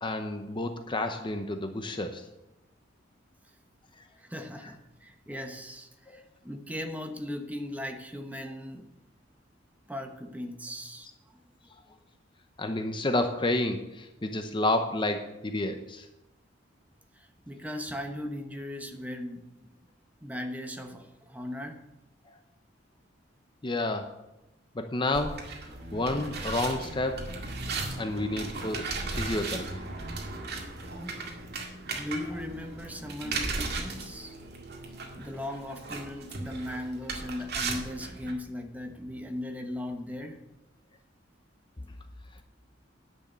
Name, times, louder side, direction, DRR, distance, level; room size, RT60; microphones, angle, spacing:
voice 1, 0.0-2.2 6.1-6.2 12.6-16.1 23.6-24.1 24.7-25.4 25.9-27.3 28.0-29.7, left 2 dB, 25° left, 6 dB, 0.8 m, -30 dB
voice 2, 4.2-8.9 9.9-11.4 17.1-19.4 20.2-21.8 31.9-34.4 35.2-40.4, left 1 dB, 10° right, 5 dB, 1.1 m, -38 dB
sound 1, 25.1-38.3, right 3 dB, 60° right, 2.0 m, -36 dB
10.5 x 6.4 x 8.3 m, 0.94 s
head